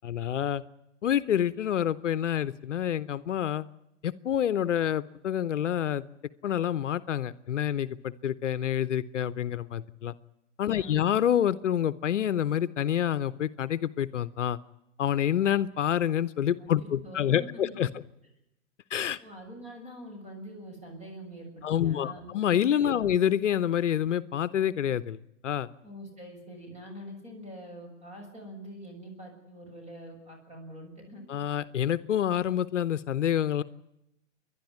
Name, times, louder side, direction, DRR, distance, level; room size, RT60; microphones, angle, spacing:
voice 1, 0.0-0.6 1.0-3.7 4.0-6.0 6.4-10.1 10.6-14.6 15.0-17.9 18.9-19.2 21.6-25.2 25.4-25.7 31.3-33.6, left 10 dB, 75° left, 16 dB, 0.9 m, -27 dB
voice 2, 10.7-11.1 16.6-16.7 17.0-17.7 19.2-22.3 22.8-23.2 25.8-31.2, equal, 20° right, 3 dB, 6.6 m, -45 dB
29.5 x 11.5 x 9.5 m, 0.85 s
hypercardioid pair, 120°, 37 cm